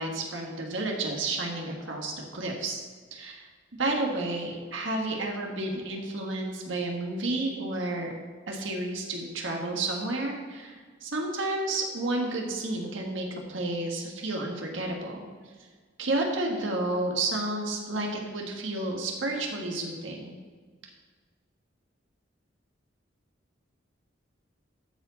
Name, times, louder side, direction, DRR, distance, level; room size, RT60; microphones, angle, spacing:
voice 1, 0.0-2.8 3.1-3.5 3.8-8.1 8.5-10.8 11.0-15.3 16.0-20.4, right 2 dB, 90° right, 1 dB, 1.5 m, -31 dB
13.0 x 4.8 x 4.0 m, 1.5 s
head